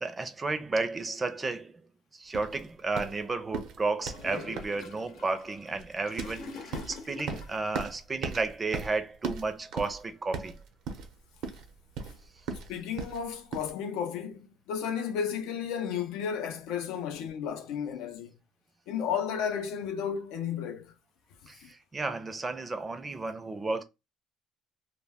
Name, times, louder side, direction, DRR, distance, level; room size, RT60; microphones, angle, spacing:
voice 1, 0.0-1.8 2.1-10.6 21.5-23.8, right 3 dB, 20° right, 0.5 m, -33 dB
sound 1, 2.3-13.7, right 4 dB, 70° right, 0.7 m, -39 dB
Gurgling / Toilet flush, 4.0-7.7, left 4 dB, 65° left, 0.8 m, -45 dB
voice 2, 12.7-18.3 18.9-20.9, left 7 dB, 85° left, 0.5 m, -33 dB
2.2 x 2.1 x 3.4 m
cardioid pair, 125°, 0 cm